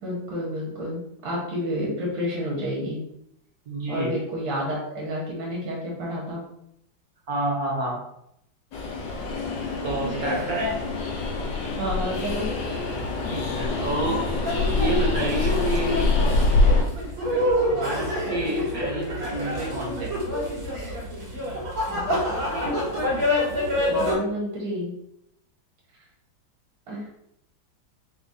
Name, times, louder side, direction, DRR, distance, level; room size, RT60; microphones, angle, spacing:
voice 1, 0.0-3.0 3.9-6.4 10.0-10.4 11.8-12.5 18.3-18.5 21.9-22.5 23.9-24.9 26.9-27.1, equal, 75° right, -3 dB, 2.0 m, -30 dB
voice 2, 3.7-4.1 7.3-8.0 9.8-10.7 13.3-14.2 14.8-16.0 17.7-20.1, right 1 dB, 55° right, -2 dB, 1.2 m, -28 dB
Train, 8.7-16.8, left 3 dB, 70° left, 1.4 m, -25 dB
sound 1, 14.4-24.1, left 1 dB, 90° right, 2.3 m, -27 dB
4.9 x 2.2 x 4.0 m, 0.75 s
omnidirectional pair, 2.3 m